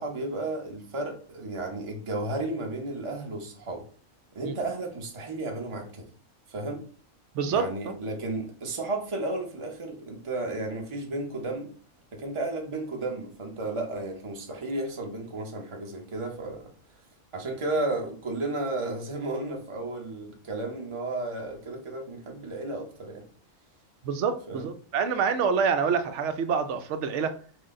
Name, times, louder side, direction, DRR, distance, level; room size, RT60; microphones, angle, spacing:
voice 1, 0.0-3.8 4.3-6.0 6.5-6.8 7.5-11.7 12.1-16.6 17.3-23.2 24.5-24.7, right 2 dB, 25° right, 0.8 m, -33 dB
voice 2, 7.3-7.9 24.0-27.4, right 6 dB, 70° right, 0.8 m, -27 dB
6.2 x 2.2 x 3.7 m
omnidirectional pair, 1.4 m